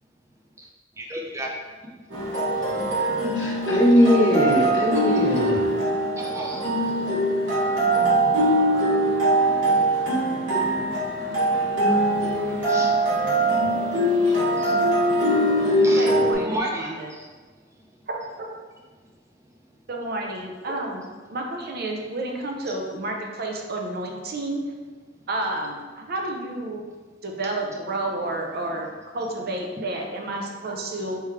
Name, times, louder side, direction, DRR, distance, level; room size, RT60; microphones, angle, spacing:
voice 1, 1.0-1.5 6.2-6.6 12.6-12.9 14.6-14.8 15.8-16.1 16.4-17.3, right 1 dB, 15° right, -1 dB, 0.5 m, -32 dB
sound 1, 2.1-16.3, right 1 dB, 80° right, 1.3 m, -22 dB
voice 2, 3.3-5.6, equal, 80° left, -3 dB, 1.0 m, -20 dB
voice 3, 16.0-17.2 18.1-18.5 19.9-21.0 21.3-24.6 25.3-26.8 27.2-28.9 29.1-31.2, right 2 dB, 55° right, 1 dB, 0.6 m, -30 dB
3.5 x 3.2 x 3.1 m, 1.4 s
head